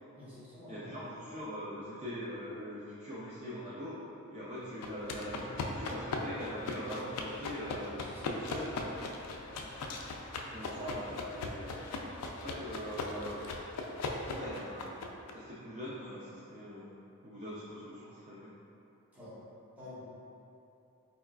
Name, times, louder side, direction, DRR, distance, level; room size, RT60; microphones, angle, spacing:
voice 1, 0.1-1.1 8.0-8.3 9.5-9.6 19.1-19.3 19.8-20.1, left 2 dB, 5° right, -11 dB, 0.8 m, -49 dB
voice 2, 0.7-4.0 4.3-9.0 10.5-11.9 12.4-13.4 14.2-15.0 15.3-18.5, equal, 30° right, -9 dB, 0.4 m, -42 dB
sound 1, 4.8-15.3, left 3 dB, 85° left, 0.3 m, -39 dB
4.1 x 2.3 x 2.3 m, 2.7 s
head